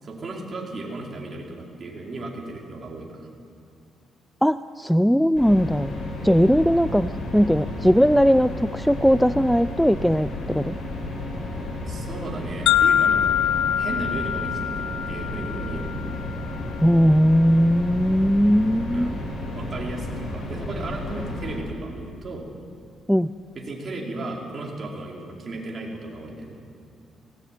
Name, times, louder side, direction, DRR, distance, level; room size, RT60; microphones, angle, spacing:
voice 1, 0.0-3.3 11.9-15.9 18.9-22.5 23.5-26.6, right 2 dB, 40° right, -1 dB, 4.7 m, -35 dB
voice 2, 4.4-5.9 6.2-10.8 16.8-19.2 23.1-23.3, equal, ahead, 14 dB, 0.4 m, -19 dB
sound 1, 5.4-21.6, left 1 dB, 55° left, 7.3 m, -32 dB
sound 2, 12.7-16.6, left 9 dB, 85° left, 0.8 m, -24 dB
19.0 x 18.0 x 9.2 m, 2.5 s
cardioid pair, 90°, 0 cm